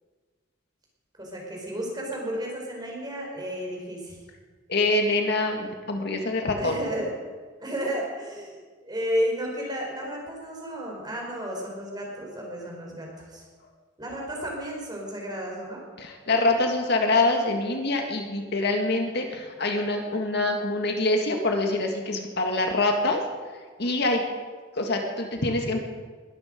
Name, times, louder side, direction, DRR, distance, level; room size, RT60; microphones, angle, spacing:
voice 1, 1.2-4.2 6.6-7.1 7.6-8.6 8.8-13.5 14.0-15.8, equal, 20° right, -1 dB, 4.8 m, -32 dB
voice 2, 4.7-6.8 16.0-23.2 23.8-24.2 24.8-25.8, left 2 dB, 55° left, 3 dB, 1.9 m, -25 dB
22.0 x 12.5 x 5.2 m, 1.5 s
head